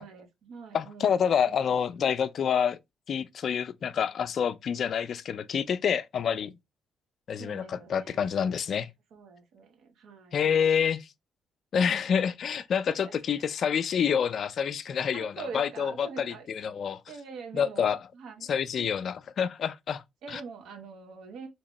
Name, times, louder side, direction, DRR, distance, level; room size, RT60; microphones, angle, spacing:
voice 1, 0.0-1.2 1.4-2.1 7.4-8.6 9.1-10.4 12.9-13.5 15.1-16.5 17.1-18.5 18.8-18.9 20.2-21.5, right 5 dB, 80° right, 1.1 m, -45 dB
voice 2, 0.7-2.8 3.1-6.5 7.3-8.9 10.3-11.1 11.7-17.0 17.5-18.0 18.5-20.0 20.3-20.4, left 7 dB, 60° left, 0.4 m, -27 dB
3.5 x 2.9 x 3.0 m
cardioid pair, 90°, 0 cm